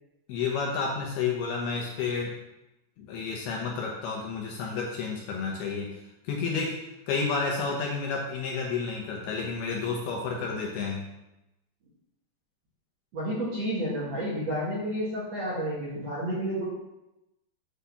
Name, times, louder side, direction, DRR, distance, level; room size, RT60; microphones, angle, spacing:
voice 1, 0.3-2.3 3.0-6.0 6.2-6.8 7.1-11.1, left 5 dB, 70° left, -1 dB, 2.5 m, -30 dB
voice 2, 13.1-16.6, equal, 50° right, -8 dB, 2.0 m, -30 dB
8.4 x 4.1 x 6.9 m, 0.92 s
omnidirectional pair, 5.3 m